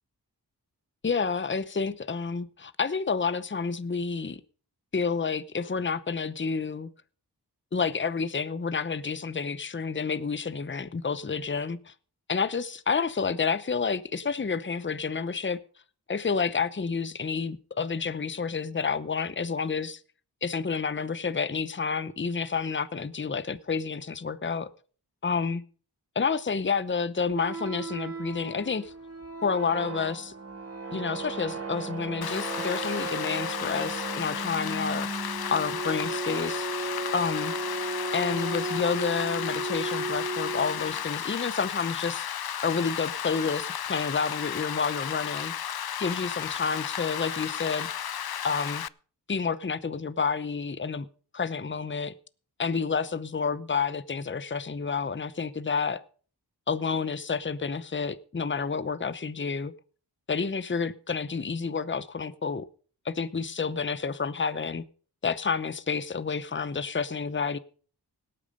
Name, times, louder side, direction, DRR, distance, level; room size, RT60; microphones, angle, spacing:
voice 1, 1.0-4.4 4.9-6.9 7.7-11.9 12.3-15.6 16.1-20.0 20.4-24.7 25.2-25.6 26.1-28.9 29.4-30.3 30.9-35.1 35.5-36.7 37.1-37.5 38.1-42.3 42.6-45.5 46.0-47.9 48.4-48.8 49.3-51.1 51.3-52.1 52.6-56.0 56.7-59.7 60.3-62.7 63.0-64.8 65.2-67.6, left 5 dB, 30° left, 0.8 m, -29 dB
sound 1, 27.3-41.0, right 3 dB, 35° right, 3.0 m, -35 dB
Rain, 32.2-48.9, left 10 dB, 65° left, 0.6 m, -34 dB
18.0 x 8.7 x 5.3 m
cardioid pair, 50°, 40 cm